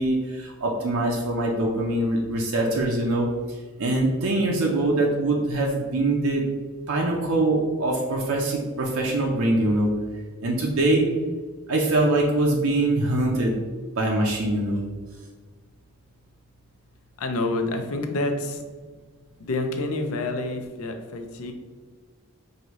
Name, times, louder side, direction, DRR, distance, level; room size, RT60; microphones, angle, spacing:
voice 1, 0.0-3.3 3.8-6.4 6.9-9.9 10.4-11.0 11.7-13.5 14.0-14.8, right 2 dB, 75° right, -1 dB, 0.6 m, -23 dB
voice 2, 17.2-18.6 19.4-21.5, left 2 dB, 75° left, 5 dB, 0.5 m, -28 dB
4.8 x 2.6 x 3.0 m, 1.5 s
head